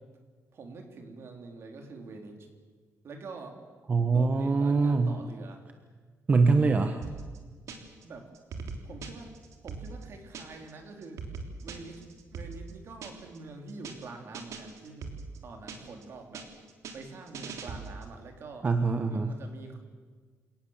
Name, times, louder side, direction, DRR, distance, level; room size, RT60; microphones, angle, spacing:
voice 1, 0.5-2.5 3.0-3.6 4.1-5.7 8.0-8.3 8.8-9.3 9.6-11.2 11.6-15.1 15.4-16.5 16.9-18.7 19.0-19.8, right 3 dB, 50° right, 3 dB, 3.8 m, -45 dB
voice 2, 3.9-5.1 6.3-7.0 18.6-19.3, right 4 dB, 30° right, 7 dB, 1.2 m, -24 dB
sound 1, 7.0-8.0 8.3-10.7 11.0-13.4 13.7-14.0 14.3-16.0 16.3-18.1, right 4 dB, 70° right, 3.3 m, -41 dB
28.0 x 18.5 x 7.4 m, 1.5 s
wide cardioid pair, 165°, 6 cm